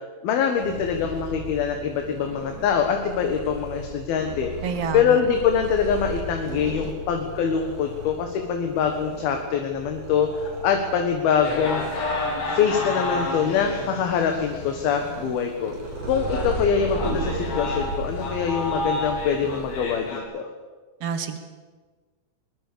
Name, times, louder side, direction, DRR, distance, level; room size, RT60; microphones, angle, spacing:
voice 1, 0.2-4.5 4.9-11.8 12.5-15.7 16.1-20.5, left 7 dB, 65° left, 4 dB, 3.2 m, -24 dB
Purr, 0.5-19.9, right 2 dB, 45° right, 4.5 m, -36 dB
voice 2, 4.6-5.2 21.0-21.4, right 6 dB, 70° right, 7 dB, 1.4 m, -28 dB
sound 1, 11.4-14.6 15.1-15.2 15.7-15.8 16.2-20.2, left 2 dB, 90° left, 6.1 m, -30 dB
22.0 x 21.5 x 6.9 m, 1.4 s
omnidirectional pair, 5.1 m